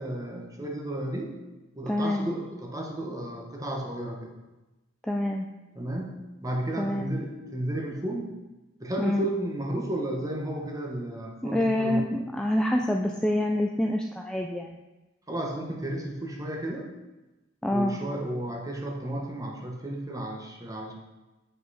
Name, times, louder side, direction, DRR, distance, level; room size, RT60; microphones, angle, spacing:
voice 1, 0.0-1.3 1.8-4.3 5.7-8.4 8.8-12.0 15.3-16.9 17.7-20.9, right 1 dB, 20° right, 0 dB, 1.2 m, -33 dB
voice 2, 1.9-2.3 5.0-5.5 6.8-7.1 9.0-9.3 11.4-14.8 17.6-18.0, left 1 dB, 5° left, 1 dB, 0.4 m, -27 dB
7.8 x 5.6 x 4.2 m, 1.1 s
head